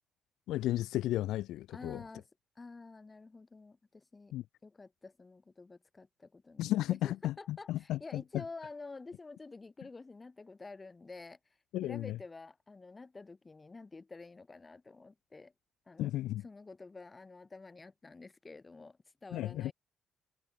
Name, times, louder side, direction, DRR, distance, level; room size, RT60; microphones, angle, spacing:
voice 1, 0.5-2.0 4.3-4.4 6.6-8.4 11.7-12.2 16.0-16.4 19.3-19.7, left 14 dB, 85° left, 0.3 m, -34 dB
voice 2, 1.7-2.3 2.6-4.3 4.6-11.4 11.8-15.5 15.9-16.1 16.4-19.7, left 3 dB, 25° left, 1.8 m, -49 dB
cardioid pair, 90°, 0 cm